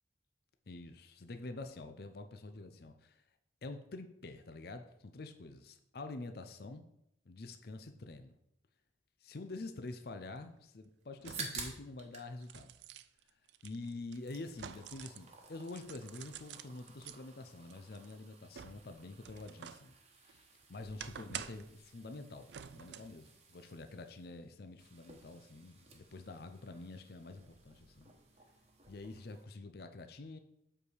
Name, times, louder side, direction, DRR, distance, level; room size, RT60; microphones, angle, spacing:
voice 1, 0.7-3.2 3.6-6.8 7.3-8.3 9.2-12.7 13.6-19.9 20.2-28.1 28.9-30.4, left 2 dB, 55° left, 7 dB, 0.6 m, -47 dB
sound 1, 9.9-10.0 11.2-11.7 12.1-15.3 15.6-17.2 17.7-19.9 20.3-21.8 22.5-23.2 23.6-23.7, right 9 dB, 70° right, 0.4 m, -49 dB
sound 2, 11.0-12.3 12.6-13.6 13.9-29.5, right 4 dB, 35° right, 1.1 m, -53 dB
7.7 x 4.7 x 4.9 m, 0.79 s
head